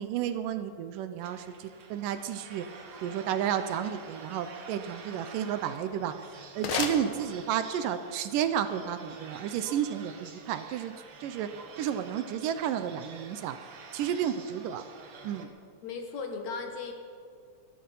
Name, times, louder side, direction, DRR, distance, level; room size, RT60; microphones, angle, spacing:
voice 1, 0.0-2.7 3.0-6.3 6.6-10.9 11.2-11.5 11.8-13.6 13.9-14.8 15.2-15.5, right 9 dB, 80° right, 10 dB, 2.2 m, -32 dB
sound 1, 1.2-15.5, right 4 dB, 55° right, 1.6 m, -48 dB
sound 2, 5.9-7.8, left 6 dB, 85° left, 2.9 m, -36 dB
voice 2, 15.8-16.9, left 4 dB, 60° left, 4 dB, 2.2 m, -36 dB
21.5 x 11.0 x 5.5 m, 2.2 s
omnidirectional pair, 4.0 m